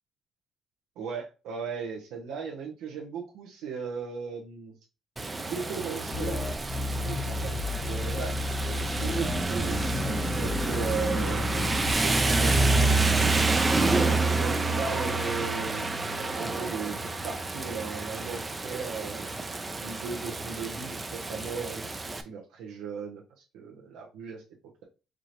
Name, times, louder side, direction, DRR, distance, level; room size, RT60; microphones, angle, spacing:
voice 1, 1.0-4.7 5.5-6.5 7.0-8.4 9.0-12.8 14.1-19.3 19.8-21.9 22.2-23.2 23.5-24.4, right 5 dB, 90° right, 0 dB, 0.8 m, -37 dB
Rain, 5.2-22.2, right 2 dB, 25° right, 0.6 m, -28 dB
sound 1, 6.1-11.9, left 2 dB, 55° left, 0.7 m, -32 dB
4.7 x 2.5 x 2.9 m, 0.30 s
cardioid pair, 90°, 0 cm